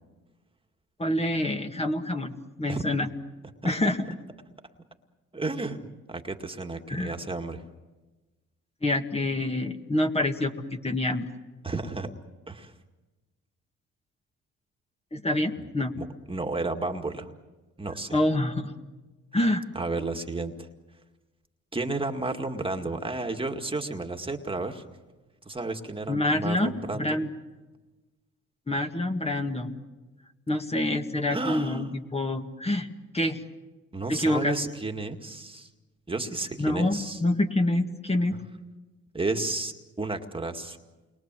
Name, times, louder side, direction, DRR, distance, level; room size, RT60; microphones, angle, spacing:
voice 1, 1.0-2.3 2.6-3.1 3.6-4.0 6.9-7.1 8.8-11.3 15.1-15.9 18.1-18.7 19.3-19.6 26.1-27.3 28.7-29.8 30.5-32.9 33.1-33.4 34.1-34.6 36.6-38.4, left 1 dB, 20° left, 4 dB, 2.0 m, -26 dB
voice 2, 5.3-5.8 6.1-7.6 11.6-12.1 12.5-12.7 16.0-17.3 17.8-18.1 19.8-20.7 21.7-24.8 25.5-27.2 31.3-31.9 33.9-35.7 36.1-37.2 39.1-40.8, right 3 dB, 15° right, 4 dB, 2.1 m, -32 dB
29.5 x 23.0 x 7.6 m, 1.2 s
cardioid pair, 90°, 30 cm